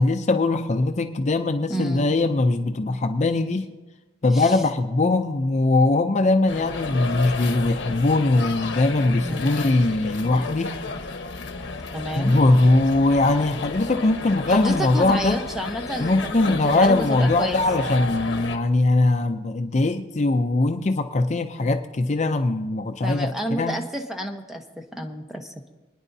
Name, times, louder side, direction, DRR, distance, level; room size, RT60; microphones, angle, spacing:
voice 1, 0.0-3.7 4.2-10.8 12.2-15.4 16.0-23.8, left 2 dB, 40° left, 6 dB, 0.5 m, -21 dB
voice 2, 1.7-2.1 4.3-4.6 9.2-9.6 11.9-12.4 14.5-16.4 16.7-17.6 23.0-25.5, equal, ahead, 3 dB, 0.9 m, -30 dB
sound 1, 6.5-18.6, left 3 dB, 75° left, 1.1 m, -32 dB
28.5 x 10.0 x 2.7 m, 1.1 s
head